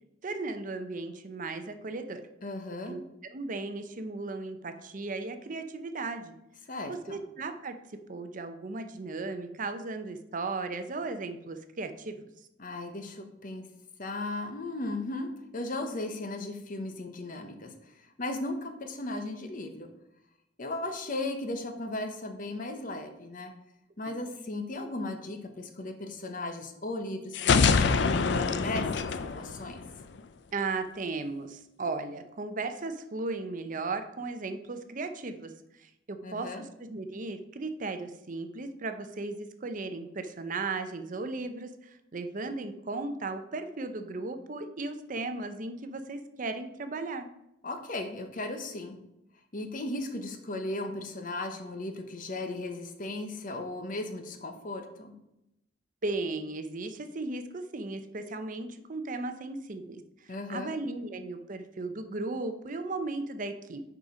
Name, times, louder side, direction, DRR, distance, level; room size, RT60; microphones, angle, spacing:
voice 1, 0.2-2.2 2.9-3.0 3.3-6.4 6.9-7.8 8.1-12.3 24.1-24.2 30.5-47.3 56.0-63.8, right 3 dB, 45° right, 8 dB, 0.6 m, -36 dB
voice 2, 2.4-3.0 6.7-7.2 12.6-13.7 14.0-19.9 20.6-23.5 24.0-29.8 36.2-36.7 47.6-49.0 49.5-55.1 60.3-60.8, left 2 dB, 45° left, 6 dB, 0.9 m, -36 dB
sound 1, 27.3-30.2, left 5 dB, 60° left, 0.5 m, -25 dB
6.7 x 5.0 x 4.9 m, 0.84 s
head